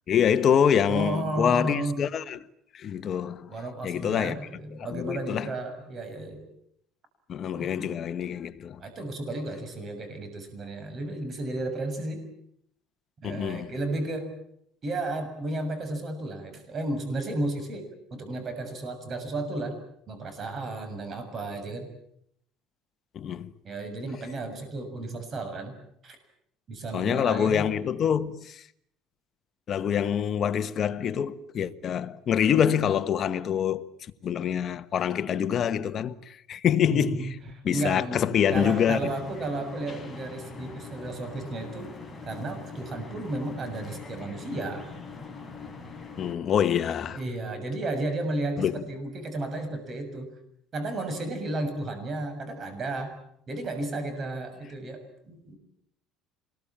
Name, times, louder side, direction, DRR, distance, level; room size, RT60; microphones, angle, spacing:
voice 1, 0.1-2.4 2.7-3.5 3.8-4.4 4.9-5.5 7.3-8.8 13.2-13.7 23.1-23.5 26.9-28.6 29.7-33.8 34.2-37.3 37.6-39.0 46.2-47.2 48.6-48.7, left 8 dB, 40° left, 1.3 m, -25 dB
voice 2, 0.8-2.0 3.5-6.4 7.5-7.9 8.8-12.2 13.2-14.3 14.8-19.8 20.1-21.9 23.6-25.7 26.0-26.2 26.7-27.6 36.9-41.9 42.2-44.9 47.1-50.3 50.7-53.1 53.5-55.6, right 2 dB, 35° right, 6.9 m, -33 dB
sound 1, 38.4-46.3, left 4 dB, 10° left, 5.0 m, -42 dB
26.5 x 21.0 x 8.8 m
cardioid pair, 130°, 0 cm